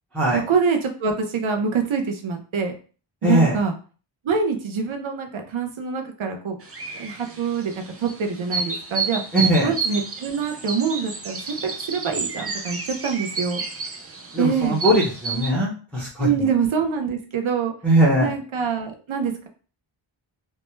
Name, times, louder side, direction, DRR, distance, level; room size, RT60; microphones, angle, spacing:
voice 1, 0.3-2.7 3.2-3.7 4.2-6.6 6.9-9.2 9.6-13.6 14.4-14.8 16.2-17.7 18.2-19.5, right 6 dB, 75° right, 4 dB, 0.6 m, -25 dB
voice 2, 3.2-3.6 9.3-9.7 14.3-16.5 17.8-18.3, right 1 dB, 5° left, -7 dB, 0.7 m, -20 dB
sound 1, 6.6-15.5, right 4 dB, 30° right, 0.4 m, -31 dB
2.2 x 2.1 x 3.0 m, 0.38 s
wide cardioid pair, 80°, 49 cm